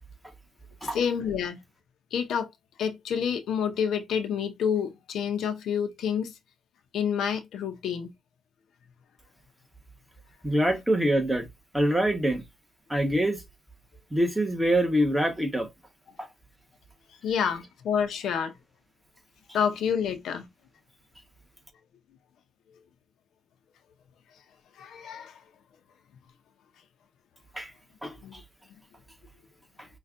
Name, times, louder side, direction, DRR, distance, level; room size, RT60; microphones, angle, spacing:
voice 1, 0.9-1.6 2.1-2.5 2.8-6.3 6.9-8.1 17.2-18.5 19.5-20.5 24.8-25.4 28.2-28.4, left 7 dB, 70° left, 0.6 m, -28 dB
voice 2, 10.4-11.5 11.7-12.4 12.9-13.4 14.1-15.7 16.2-16.3 27.5-27.7 28.0-28.4 29.8-29.9, right 1 dB, 5° right, 1.1 m, -25 dB
5.4 x 2.3 x 2.5 m
cardioid pair, 90°, 0 cm